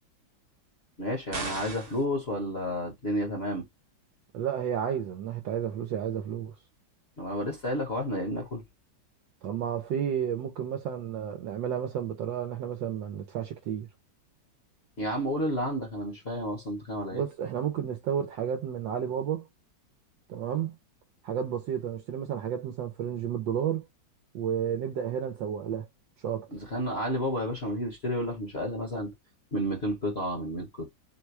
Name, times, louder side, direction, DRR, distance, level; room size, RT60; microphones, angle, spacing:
voice 1, 1.0-3.6 7.2-8.6 15.0-17.2 26.5-29.1 29.5-30.9, equal, 35° left, 1.2 m, -31 dB
sound 1, 1.3-2.0, right 4 dB, 45° right, 1.3 m, -36 dB
voice 2, 4.3-6.5 9.4-13.9 17.1-19.5 20.3-20.7 21.2-23.9 24.3-25.9 26.2-26.5, right 9 dB, 75° right, 1.4 m, -31 dB
4.3 x 2.2 x 4.6 m
omnidirectional pair, 2.1 m